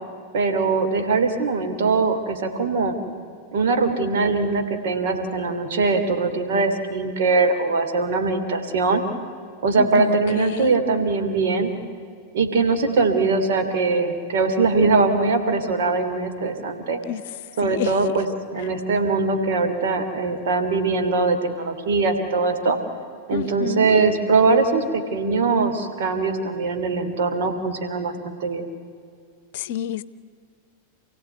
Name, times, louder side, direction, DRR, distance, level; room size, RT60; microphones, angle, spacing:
voice 1, 0.3-3.0 3.5-9.0 9.6-11.7 12.3-17.0 17.6-22.8 23.3-28.6, right 4 dB, 55° right, 2.9 m, -21 dB
voice 2, 9.8-10.7 17.1-17.2 17.6-17.9 23.3-23.9 29.5-30.0, left 11 dB, 55° left, 0.8 m, -28 dB
28.5 x 17.0 x 9.4 m
figure-of-eight pair, 90°, 0 cm